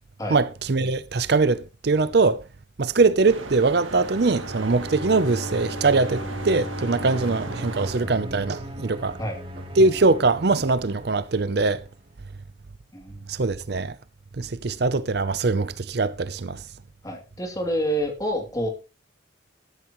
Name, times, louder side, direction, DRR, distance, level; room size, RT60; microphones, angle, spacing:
voice 1, 0.3-2.4 2.8-9.2 9.8-11.8 13.3-14.0 14.4-16.6, right 3 dB, 55° right, 0.6 m, -22 dB
sound 1, 3.2-8.1, right 3 dB, 90° right, 1.9 m, -37 dB
Bowed string instrument, 4.2-9.0, equal, 80° left, 3.7 m, -36 dB
sound 2, 6.9-12.0, equal, 30° right, 2.9 m, -41 dB
voice 2, 12.9-13.3 17.0-18.7, equal, 20° left, 2.8 m, -28 dB
14.0 x 12.0 x 3.1 m
head